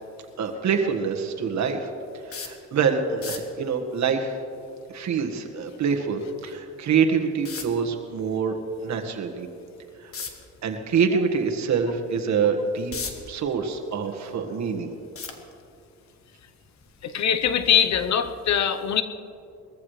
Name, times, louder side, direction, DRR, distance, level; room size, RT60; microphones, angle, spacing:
voice 1, 0.4-1.9 2.3-4.4 4.9-8.6 8.8-9.5 10.0-10.1 10.6-14.9, right 6 dB, 65° right, 4 dB, 1.6 m, -25 dB
sound 1, 2.3-2.6 3.1-3.6 6.3-6.4 7.4-7.9 10.1-10.4 11.0-11.1 11.6-11.7 12.5-13.3 13.8-14.5 15.2-15.8 16.8-17.0 17.3-17.4, left 5 dB, 50° left, 1.7 m, -35 dB
voice 2, 17.0-19.0, left 8 dB, 65° left, 10 dB, 1.0 m, -22 dB
21.5 x 14.5 x 3.3 m, 2.6 s
cardioid pair, 90°, 30 cm